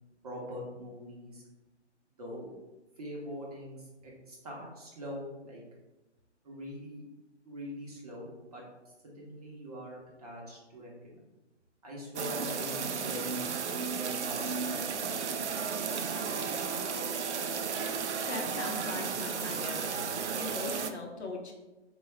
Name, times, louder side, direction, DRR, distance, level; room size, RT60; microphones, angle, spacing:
voice 1, 0.2-1.4 2.2-2.5 3.0-5.6 6.4-7.0 7.4-8.6 9.0-11.2 11.8-13.4 14.0-15.5, equal, 35° right, -4 dB, 0.8 m, -43 dB
sound 1, 12.2-20.9, right 6 dB, 75° right, 0.5 m, -34 dB
voice 2, 18.3-21.5, left 3 dB, 65° left, 1 dB, 0.9 m, -40 dB
4.0 x 2.3 x 3.2 m, 1.1 s
figure-of-eight pair, 140°, 35 cm